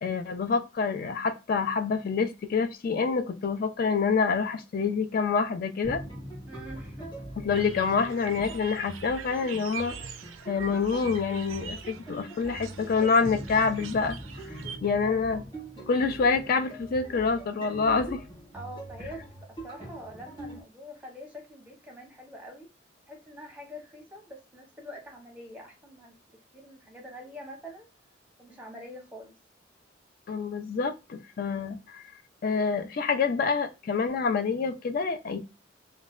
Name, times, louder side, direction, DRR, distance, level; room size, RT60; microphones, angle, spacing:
voice 1, 0.0-6.0 7.4-10.0 10.5-14.2 14.5-15.4 15.9-18.2 30.3-32.0 32.4-35.4, left 5 dB, 45° left, 9 dB, 0.3 m, -27 dB
sound 1, 5.8-20.6, right 1 dB, 25° left, 1.5 m, -42 dB
voice 2, 6.5-7.3 15.0-15.3 18.5-22.7 23.1-27.9 28.4-29.3, equal, 10° right, 0 dB, 0.7 m, -45 dB
sound 2, 7.5-14.8, right 8 dB, 75° right, 0.4 m, -44 dB
3.1 x 2.1 x 2.3 m, 0.28 s
head